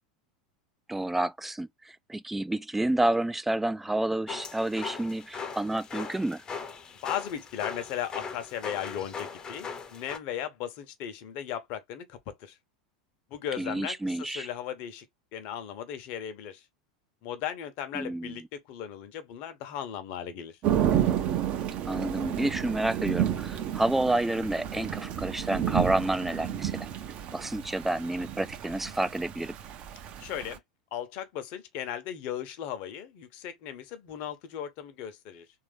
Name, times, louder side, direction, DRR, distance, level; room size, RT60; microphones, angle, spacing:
voice 1, 0.9-6.4 13.6-14.5 17.9-18.3 21.9-26.7 27.3-29.5, right 1 dB, 5° right, 0.4 m, -29 dB
sound 1, 4.3-10.2, left 5 dB, 20° left, 0.8 m, -39 dB
voice 2, 7.0-12.6 13.3-15.1 15.3-16.6 17.2-20.6 30.2-30.6 30.9-35.5, left 10 dB, 45° left, 0.9 m, -37 dB
Thunder / Rain, 20.6-30.6, right 10 dB, 40° right, 0.7 m, -31 dB
3.4 x 2.8 x 3.3 m
figure-of-eight pair, 85°, 4 cm